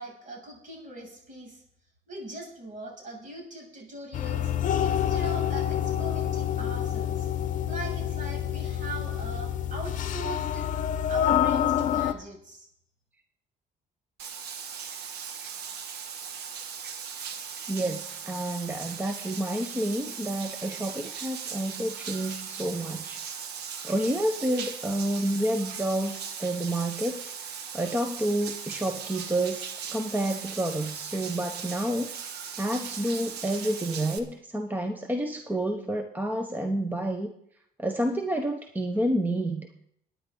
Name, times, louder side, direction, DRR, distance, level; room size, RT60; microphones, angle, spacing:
voice 1, 0.0-1.6 2.1-4.5 4.8-7.3 7.7-10.7 11.1-12.7, right 2 dB, 50° right, 0 dB, 7.6 m, -41 dB
sound 1, 4.1-12.1, left 10 dB, 50° left, 0.8 m, -27 dB
Bathtub (filling or washing), 14.2-34.2, right 7 dB, 75° right, 1.4 m, -38 dB
voice 2, 17.7-23.3 23.8-29.6 29.9-32.1 32.6-37.3 37.8-39.7, right 1 dB, 10° right, 6 dB, 0.9 m, -29 dB
21.5 x 9.7 x 3.9 m, 0.71 s
cardioid pair, 110°, 17 cm